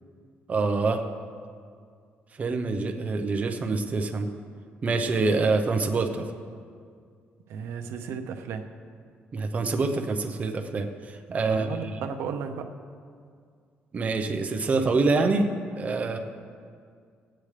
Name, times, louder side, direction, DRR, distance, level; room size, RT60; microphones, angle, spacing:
voice 1, 0.5-1.0 2.4-4.3 4.8-6.3 9.3-12.0 13.9-15.5 15.8-16.2, right 3 dB, 35° right, 5 dB, 0.9 m, -26 dB
voice 2, 7.5-8.7 11.5-12.7, right 6 dB, 85° right, 6 dB, 0.8 m, -34 dB
18.0 x 9.0 x 3.3 m, 2.2 s
cardioid pair, 120°, 4 cm